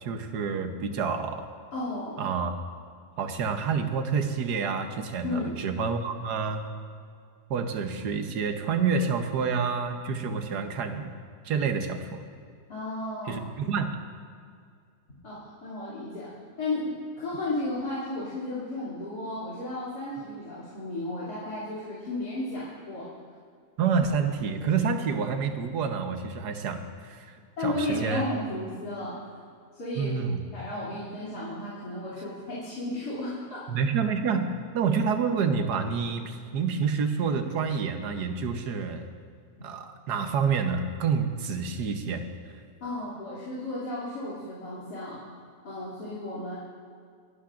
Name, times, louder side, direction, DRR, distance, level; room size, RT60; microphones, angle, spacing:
voice 1, 0.0-1.5 2.2-2.5 3.2-6.7 7.5-11.1 11.4-12.2 13.3-14.0 23.8-27.3 27.6-27.7 28.0-28.2 30.0-30.4 33.7-39.1 39.6-42.2, right 5 dB, 80° right, 7 dB, 1.5 m, -28 dB
voice 2, 1.7-2.3 5.2-5.6 12.7-13.5 15.2-16.3 16.6-23.1 27.6-29.3 29.7-30.2 30.5-33.6 39.6-39.7 42.8-45.2 45.6-46.6, left 2 dB, 75° left, -9 dB, 3.3 m, -34 dB
27.0 x 11.5 x 2.5 m, 2.2 s
omnidirectional pair, 1.7 m